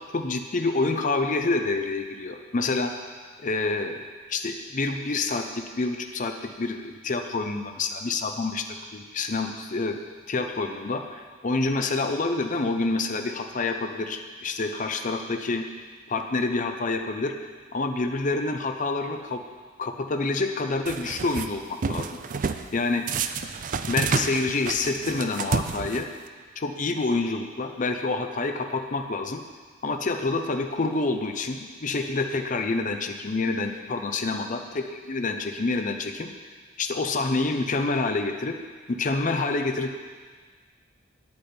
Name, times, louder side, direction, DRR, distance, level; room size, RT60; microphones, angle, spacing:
voice 1, 0.1-2.9 3.4-4.0 4.3-8.6 8.9-10.0 10.3-15.6 16.1-17.3 17.7-19.4 19.8-22.2 22.7-23.0 23.8-26.1 26.6-29.4 29.8-34.6 34.9-36.3 36.8-38.6 38.9-40.0, left 3 dB, 40° left, 5 dB, 0.6 m, -27 dB
sound 1, 20.9-21.5 21.8-22.7 23.1-26.3, right 5 dB, 45° right, 0.4 m, -29 dB
9.7 x 8.6 x 4.3 m, 1.5 s
head